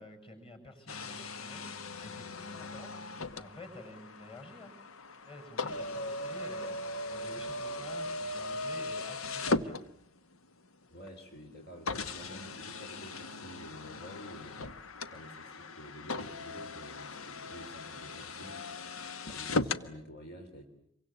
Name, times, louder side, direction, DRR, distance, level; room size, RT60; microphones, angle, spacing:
voice 1, 0.0-3.0 3.3-4.7 5.2-9.8, left 1 dB, 25° left, 6 dB, 6.5 m, -50 dB
sound 1, 0.9-10.4 11.1-11.2 11.9-19.9, left 2 dB, 85° left, 1.3 m, -38 dB
voice 2, 10.9-14.8 15.0-20.6, equal, 50° left, 3 dB, 3.5 m, -50 dB
27.5 x 24.0 x 8.5 m, 0.71 s
head